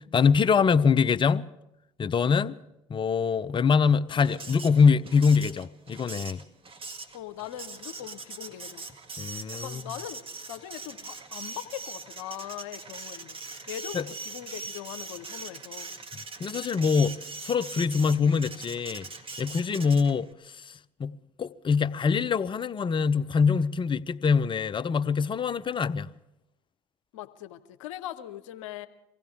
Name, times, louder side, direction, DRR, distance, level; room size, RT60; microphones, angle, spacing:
voice 1, 0.1-1.5 2.0-2.6 2.9-6.4 9.2-9.8 13.9-14.0 16.4-19.1 19.4-26.1, left 5 dB, 30° left, 0.6 m, -24 dB
Printer, 4.2-20.3, right 3 dB, 35° right, 1.6 m, -41 dB
voice 2, 7.1-8.9 9.6-10.2 10.5-13.4 13.7-15.9 27.1-28.9, left 12 dB, 80° left, 0.8 m, -40 dB
23.5 x 16.0 x 3.6 m
hypercardioid pair, 65°, 16 cm